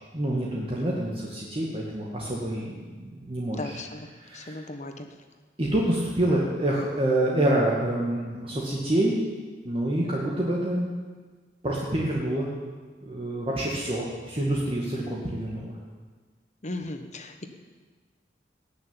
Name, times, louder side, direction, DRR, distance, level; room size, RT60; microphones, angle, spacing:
voice 1, 0.1-3.8 4.2-4.6 5.6-9.2 9.6-10.9 11.6-12.5 13.0-15.8, right 1 dB, 30° right, -4 dB, 1.9 m, -27 dB
voice 2, 3.5-4.1 4.3-5.1 16.6-17.5, left 2 dB, 40° left, 7 dB, 1.3 m, -36 dB
19.0 x 6.6 x 8.9 m, 1.4 s
head